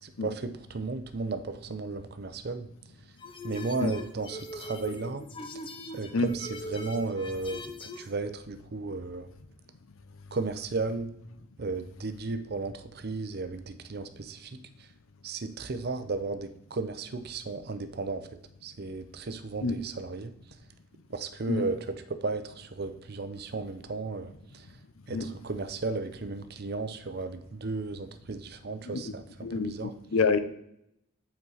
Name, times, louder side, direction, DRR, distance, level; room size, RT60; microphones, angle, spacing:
voice 1, 0.0-2.7 3.4-5.2 5.5-5.6 5.9-9.3 10.3-11.1 11.6-14.9 15.2-20.4 21.1-24.7 25.1-29.9, right 3 dB, 50° right, 10 dB, 0.6 m, -35 dB
sound 1, 3.2-8.1, left 1 dB, 25° left, 0.5 m, -41 dB
voice 2, 29.4-30.4, left 4 dB, 85° left, 11 dB, 0.7 m, -27 dB
8.1 x 4.5 x 4.0 m, 0.75 s
head